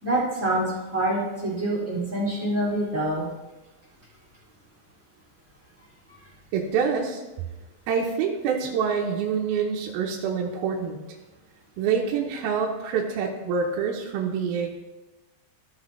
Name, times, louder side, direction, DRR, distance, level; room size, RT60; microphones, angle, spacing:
voice 1, 0.0-3.2, right 1 dB, 20° right, -6 dB, 2.5 m, -26 dB
voice 2, 6.5-7.2 7.9-11.0 11.8-14.7, right 6 dB, 75° right, 0 dB, 2.5 m, -26 dB
14.5 x 6.5 x 3.2 m, 1.1 s
omnidirectional pair, 4.9 m